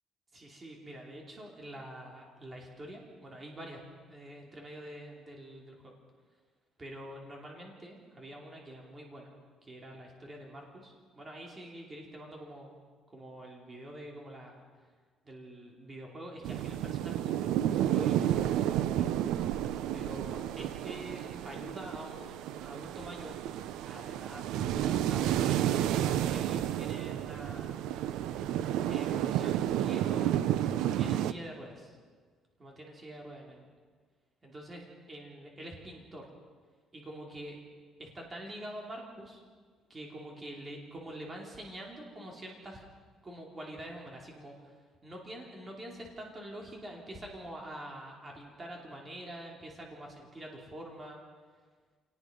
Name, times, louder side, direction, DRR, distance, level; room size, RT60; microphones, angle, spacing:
voice 1, 0.3-3.8 4.1-5.9 6.8-9.3 9.6-12.8 13.1-14.6 15.2-19.1 19.9-23.3 23.8-27.8 28.9-30.4 31.0-32.0 32.6-33.7 34.4-36.3 36.9-37.7 38.0-39.4 39.9-42.8 43.2-44.8 45.0-51.2, right 1 dB, 20° right, 0 dB, 3.2 m, -46 dB
sound 1, 16.4-31.3, right 11 dB, 90° right, 0.7 m, -31 dB
28.0 x 18.5 x 5.3 m, 1.5 s
cardioid pair, 170°, 0 cm